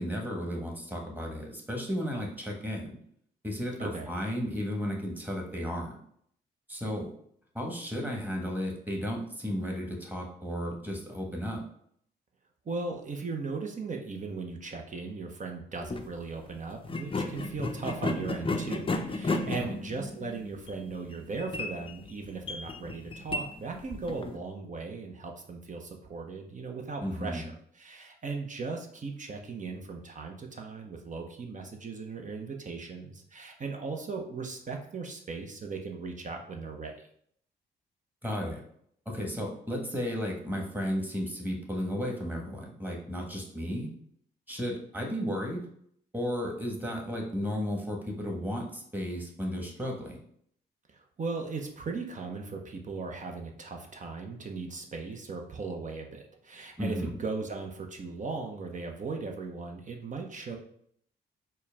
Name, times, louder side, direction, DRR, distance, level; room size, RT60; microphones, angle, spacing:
voice 1, 0.0-3.0 3.4-6.0 6.7-7.1 7.5-11.6 19.5-19.7 27.0-27.4 38.2-38.6 39.0-43.9 44.5-45.6 46.1-50.2 56.8-57.1, equal, 10° right, 0 dB, 1.3 m, -34 dB
voice 2, 3.8-4.1 12.7-36.9 50.9-60.6, right 4 dB, 40° right, 2 dB, 0.7 m, -38 dB
sound 1, 15.8-16.1 16.8-24.4, left 2 dB, 25° left, 0.5 m, -34 dB
4.4 x 2.2 x 3.4 m, 0.65 s
supercardioid pair, 55°, 20 cm